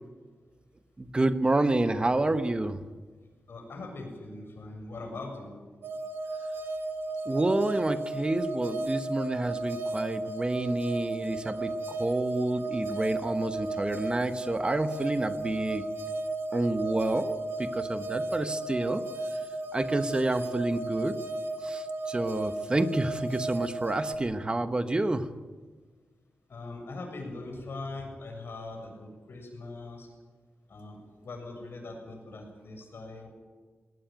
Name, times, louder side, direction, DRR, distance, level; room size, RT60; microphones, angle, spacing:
voice 1, 1.0-2.8 7.2-15.9 16.5-19.0 19.3-19.4 19.7-21.2 21.6-25.3, right 2 dB, 25° right, 10 dB, 1.2 m, -29 dB
voice 2, 3.5-5.5 26.5-30.1 30.7-33.3, left 2 dB, 65° left, 2 dB, 7.3 m, -41 dB
sound 1, 5.8-24.2, right 2 dB, 75° right, 2.0 m, -34 dB
20.5 x 18.5 x 9.3 m, 1.4 s
wide cardioid pair, 130°, 4 cm